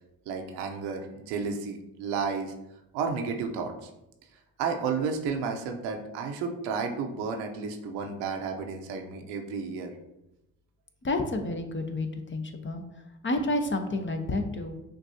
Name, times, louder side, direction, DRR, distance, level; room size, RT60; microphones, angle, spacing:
voice 1, 0.3-2.5 2.9-3.9 4.6-10.0, right 5 dB, 85° right, 4 dB, 0.7 m, -32 dB
voice 2, 11.0-12.8 13.2-14.8, left 2 dB, 30° left, 6 dB, 0.7 m, -30 dB
6.5 x 2.6 x 2.7 m, 0.90 s
hypercardioid pair, 55°, 41 cm